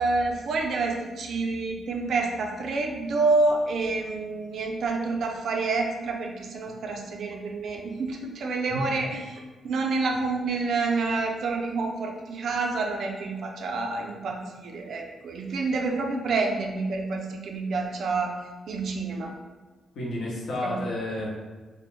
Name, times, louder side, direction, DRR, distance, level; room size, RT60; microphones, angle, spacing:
voice 1, 0.0-18.3 18.7-19.3 20.6-20.8, right 3 dB, 70° right, 2 dB, 0.4 m, -28 dB
voice 2, 19.9-21.4, left 1 dB, 80° left, -5 dB, 0.8 m, -31 dB
2.3 x 2.0 x 3.1 m, 1.3 s
cardioid pair, 75°, 0 cm